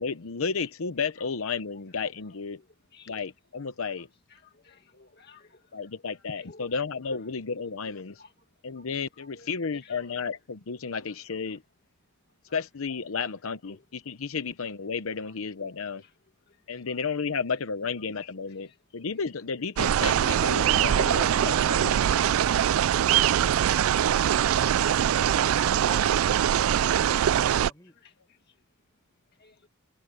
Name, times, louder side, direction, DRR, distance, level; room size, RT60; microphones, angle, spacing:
voice 1, 0.0-2.6 3.1-4.1 5.7-8.2 8.6-11.6 12.5-16.0 16.7-22.1, left 5 dB, 80° left, 0.8 m, -32 dB
voice 2, 2.6-3.2 4.3-6.7 7.0-7.3 7.9-8.5 8.7-8.9 9.1-10.3 10.8-10.9 11.3-11.6 12.4-12.6 13.6-13.8 15.2-15.4 15.8-17.0 18.2-18.8 27.8-28.6 29.3-29.7, left 3 dB, 50° left, 1.9 m, -57 dB
sound 1, 19.8-27.7, right 10 dB, 80° right, 0.3 m, -23 dB
voice 3, 24.7-27.1 27.5-28.0, left 1 dB, 15° left, 6.7 m, -48 dB
head